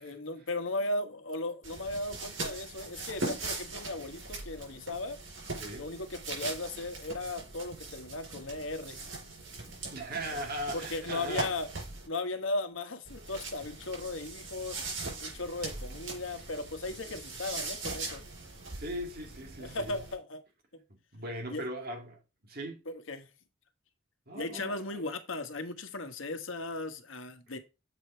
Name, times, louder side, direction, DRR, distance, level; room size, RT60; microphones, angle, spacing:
voice 1, 0.0-5.2 5.8-9.0 10.3-10.5 10.7-11.7 12.1-14.8 15.2-18.2 19.6-20.4 21.5-21.7 22.9-23.3 24.3-27.6, left 2 dB, 85° left, 1.3 m, -36 dB
sound 1, 1.6-12.1 13.1-20.1, right 3 dB, 90° right, 4.8 m, -41 dB
voice 2, 9.9-11.4 18.8-20.0 21.1-22.8 24.3-25.1, right 1 dB, 55° right, 2.5 m, -39 dB
7.5 x 5.0 x 4.4 m
head